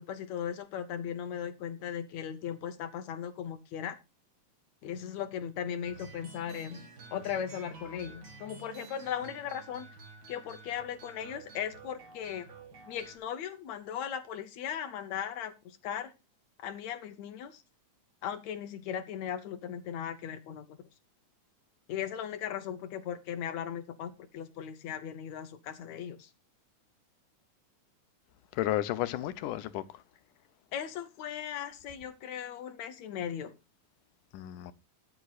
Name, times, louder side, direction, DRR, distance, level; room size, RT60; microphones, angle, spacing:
voice 1, 0.0-4.0 4.8-9.9 10.3-12.5 12.9-16.1 16.6-17.6 18.2-20.8 21.9-26.3 30.7-33.5, left 9 dB, 70° left, 2.1 m, -38 dB
sound 1, 5.8-13.2, right 3 dB, 40° right, 2.0 m, -50 dB
voice 2, 28.5-29.8 34.3-34.7, left 14 dB, 90° left, 2.3 m, -32 dB
21.0 x 7.6 x 2.4 m
omnidirectional pair, 3.5 m